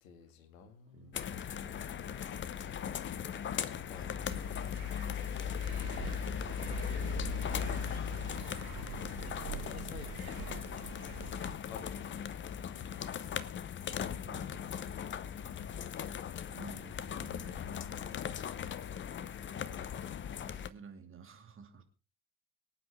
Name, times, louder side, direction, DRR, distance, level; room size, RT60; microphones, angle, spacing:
voice 1, 0.0-1.4 3.9-4.4 9.5-10.3 11.7-12.1 19.6-20.1, left 7 dB, 65° left, 8 dB, 2.2 m, -52 dB
voice 2, 0.9-1.7 3.7-4.5 5.0-5.3 9.7-10.0 14.2-14.9 16.5-18.1 20.4-21.8, right 6 dB, 30° right, 5 dB, 2.5 m, -53 dB
sound 1, 1.1-20.7, left 8 dB, 25° left, 0.8 m, -38 dB
sound 2, 4.2-11.5, right 7 dB, 75° right, 2.7 m, -46 dB
24.0 x 8.9 x 3.5 m, 0.33 s
figure-of-eight pair, 65°, 44 cm